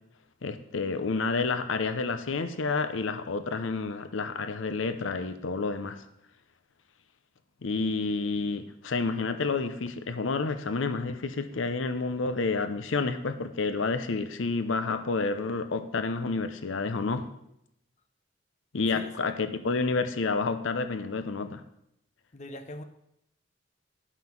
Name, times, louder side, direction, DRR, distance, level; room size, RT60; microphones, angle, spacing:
voice 1, 0.4-6.0 7.6-17.2 18.7-21.6, left 4 dB, 80° left, 9 dB, 0.7 m, -29 dB
voice 2, 22.3-22.8, left 1 dB, 35° left, 7 dB, 0.7 m, -41 dB
11.5 x 5.8 x 5.9 m, 0.80 s
head